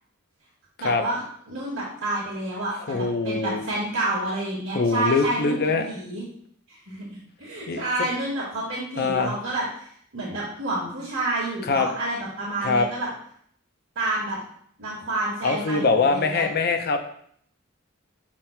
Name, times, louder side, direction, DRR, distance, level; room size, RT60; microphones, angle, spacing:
voice 1, 0.8-1.2 1.5-6.2 6.7-9.9 10.1-13.1 14.0-14.4 14.8-16.5, right 2 dB, 65° right, -8 dB, 1.8 m, -29 dB
voice 2, 2.9-3.6 4.7-5.9 7.7-7.8 9.0-9.3 11.6-11.9 12.6-12.9 15.4-17.0, left 4 dB, 50° left, 6 dB, 0.6 m, -23 dB
7.3 x 6.0 x 2.2 m, 0.65 s
head